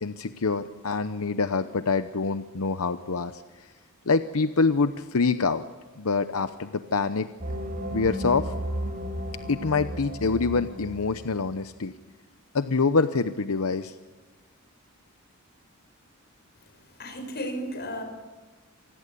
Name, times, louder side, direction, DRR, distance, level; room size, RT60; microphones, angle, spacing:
voice 1, 0.0-3.7 4.1-5.7 6.0-7.3 7.9-8.5 9.5-11.9 12.5-13.9, left 4 dB, 85° left, 10 dB, 0.8 m, -26 dB
sound 1, 7.4-11.4, equal, 40° right, 4.9 m, -34 dB
voice 2, 17.0-18.0, equal, 50° left, 6 dB, 5.7 m, -33 dB
27.5 x 19.5 x 8.4 m, 1.2 s
head